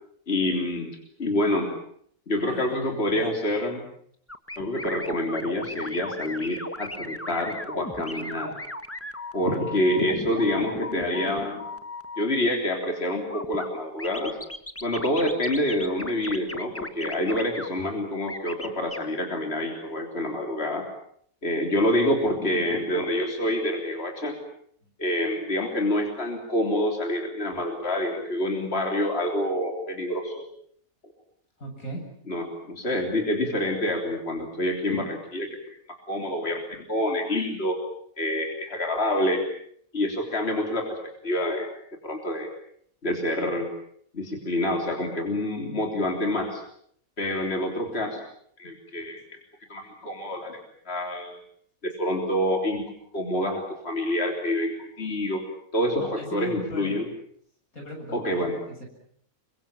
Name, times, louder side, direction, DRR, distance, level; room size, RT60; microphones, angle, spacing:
voice 1, 0.3-1.7 2.3-3.8 4.6-8.6 9.3-11.7 12.2-14.4 14.8-20.8 21.4-24.4 25.0-30.4 32.3-35.8 36.1-37.8 38.2-39.4 39.9-41.0 41.2-41.7 42.0-42.5 43.0-43.7 44.1-46.6 47.2-48.2 48.6-49.2 49.7-50.6 50.9-51.4 51.8-52.8 53.1-55.4 55.7-57.1 58.1-58.6, left 1 dB, 45° left, 2 dB, 3.8 m, -27 dB
voice 2, 2.3-3.2 24.8-24.9 31.6-32.0 56.0-57.0 57.7-58.9, equal, 85° left, 2 dB, 8.3 m, -38 dB
sound 1, 4.3-12.2 13.3-13.7 14.0-17.7 18.3-19.0, left 2 dB, 10° left, 1.4 m, -36 dB
28.0 x 24.5 x 7.3 m, 0.64 s
omnidirectional pair, 1.5 m